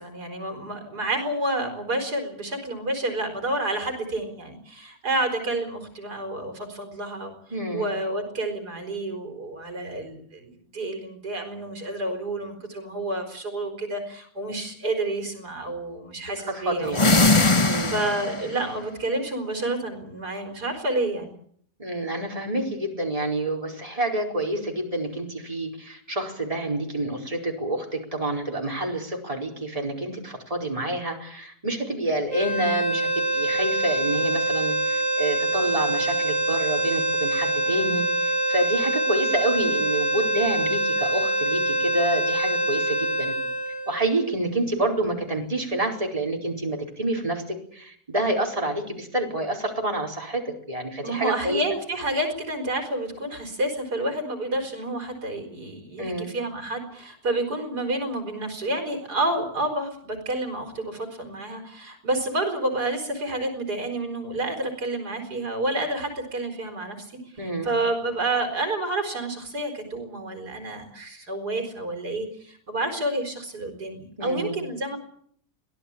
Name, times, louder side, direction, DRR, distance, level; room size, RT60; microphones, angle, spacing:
voice 1, 0.0-7.3 7.7-16.9 17.9-21.3 51.0-67.0 67.6-75.0, right 2 dB, 80° right, 5 dB, 4.8 m, -29 dB
voice 2, 7.5-7.9 16.4-17.2 17.6-18.0 21.8-43.3 43.9-51.6 56.0-56.3 67.4-67.7 74.2-74.6, right 1 dB, 20° right, 0 dB, 4.6 m, -28 dB
sound 1, 16.9-18.5, left 2 dB, 20° left, 1.2 m, -20 dB
sound 2, 32.3-44.5, right 1 dB, 50° left, 6.1 m, -25 dB
23.5 x 17.0 x 8.7 m, 0.64 s
omnidirectional pair, 1.7 m